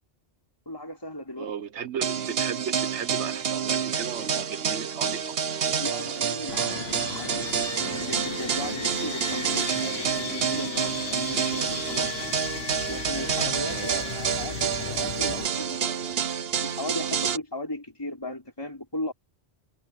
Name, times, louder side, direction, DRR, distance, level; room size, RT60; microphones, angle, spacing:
voice 1, 0.6-1.5 5.8-12.3 12.9-16.2 16.6-19.1, left 1 dB, 20° left, 5.0 m, -36 dB
voice 2, 1.4-5.2 13.8-14.1, right 7 dB, 85° right, 1.3 m, -35 dB
sound 1, 2.0-17.4, right 7 dB, 65° right, 1.1 m, -28 dB
sound 2, 6.5-15.5, left 8 dB, 65° left, 1.1 m, -36 dB
omnidirectional pair, 1.1 m